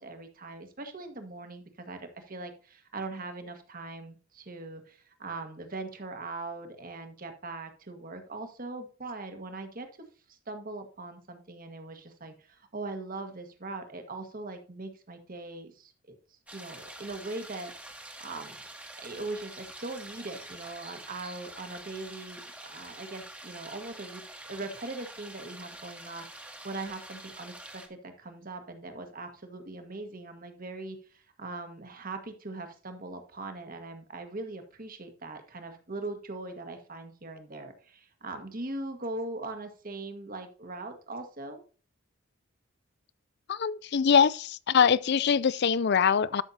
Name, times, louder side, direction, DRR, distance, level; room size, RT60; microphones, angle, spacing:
voice 1, 0.0-9.9 10.3-16.1 16.5-18.6 19.0-41.6, right 2 dB, 40° right, 1.6 m, -41 dB
sound 1, 16.5-27.9, right 1 dB, 5° right, 1.3 m, -46 dB
voice 2, 43.5-46.4, left 7 dB, 50° left, 0.4 m, -23 dB
12.5 x 6.4 x 2.8 m
head